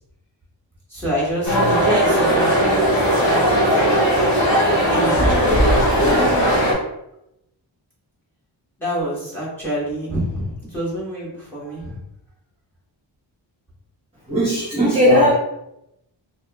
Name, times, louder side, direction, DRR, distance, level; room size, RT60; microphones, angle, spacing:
voice 1, 0.9-4.0 4.6-6.0 8.8-12.0, right 1 dB, 5° left, -7 dB, 1.1 m, -27 dB
sound 1, 1.4-6.7, equal, 50° left, 1.1 m, -17 dB
voice 2, 14.3-15.3, equal, 15° right, -8 dB, 0.7 m, -16 dB
2.8 x 2.4 x 2.2 m, 0.84 s
wide cardioid pair, 165°, 47 cm